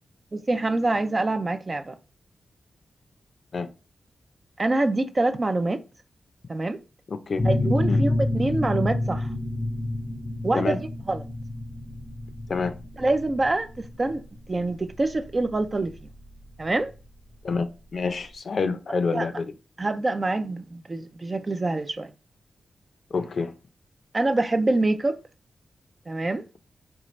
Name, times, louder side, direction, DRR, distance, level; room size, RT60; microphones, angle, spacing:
voice 1, 0.3-2.0 4.6-5.8 6.5-6.8 7.4-9.3 10.4-11.3 13.0-14.2 14.5-16.1 16.6-16.9 19.1-19.3 19.8-22.1 24.1-25.2 26.1-26.5, right 2 dB, 30° right, 0.4 m, -25 dB
sound 1, 7.4-16.8, left 2 dB, 15° left, 0.7 m, -28 dB
voice 2, 17.9-19.4 23.1-23.5, left 4 dB, 60° left, 0.5 m, -27 dB
4.3 x 2.4 x 3.1 m
wide cardioid pair, 90°, 0 cm